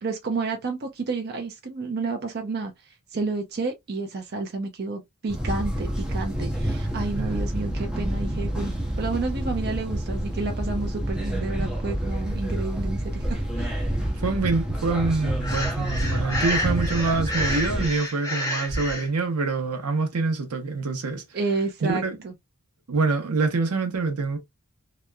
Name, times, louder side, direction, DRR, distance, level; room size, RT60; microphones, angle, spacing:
voice 1, 0.0-2.7 3.1-13.7 21.3-22.3, right 3 dB, 45° right, 0.5 m, -30 dB
sound 1, 5.3-17.9, right 1 dB, 5° right, 0.6 m, -28 dB
voice 2, 14.2-21.2 21.8-22.2 22.9-24.4, right 3 dB, 85° right, 0.8 m, -25 dB
Breathing, 15.4-19.1, left 1 dB, 15° left, 0.9 m, -29 dB
2.8 x 2.1 x 2.2 m
head